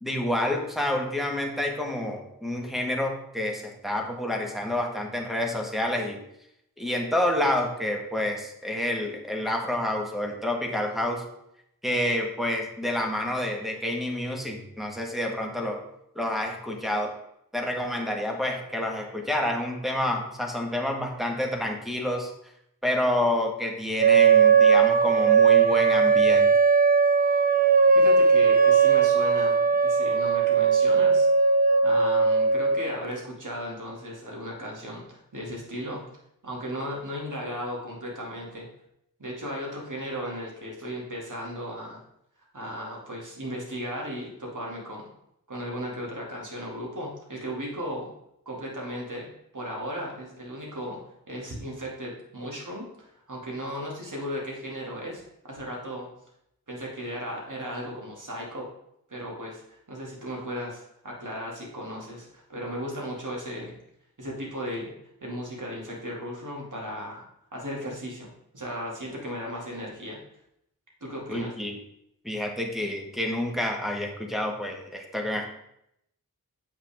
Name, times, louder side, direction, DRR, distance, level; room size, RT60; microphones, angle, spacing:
voice 1, 0.0-6.2 6.8-11.2 11.8-15.8 16.1-17.1 17.5-22.3 22.8-26.5 71.3-71.7 72.2-75.5, left 1 dB, ahead, 0 dB, 1.5 m, -28 dB
sound 1, 24.0-32.9, right 5 dB, 25° right, 0.5 m, -19 dB
voice 2, 27.9-31.3 31.6-36.0 36.4-38.7 39.2-42.0 42.5-45.1 45.5-48.1 48.5-51.0 51.3-56.1 56.7-58.7 59.1-63.8 64.2-64.9 65.2-67.2 67.5-70.2 71.0-71.5, equal, 55° right, -2 dB, 2.5 m, -36 dB
7.9 x 5.7 x 3.6 m, 0.78 s
wide cardioid pair, 40°, 36 cm